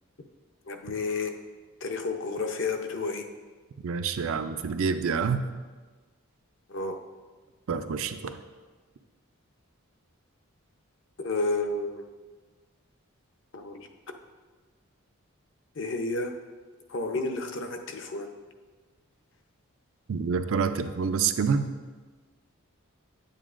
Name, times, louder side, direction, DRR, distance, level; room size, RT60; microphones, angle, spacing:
voice 1, 0.7-1.3 1.8-3.2 6.7-6.9 11.2-12.0 13.5-13.9 15.8-16.4 16.9-18.3, left 3 dB, 55° left, 5 dB, 0.6 m, -31 dB
voice 2, 3.8-5.4 7.7-8.3 20.1-21.7, right 5 dB, 65° right, 9 dB, 0.4 m, -27 dB
9.1 x 9.0 x 2.5 m, 1.4 s
head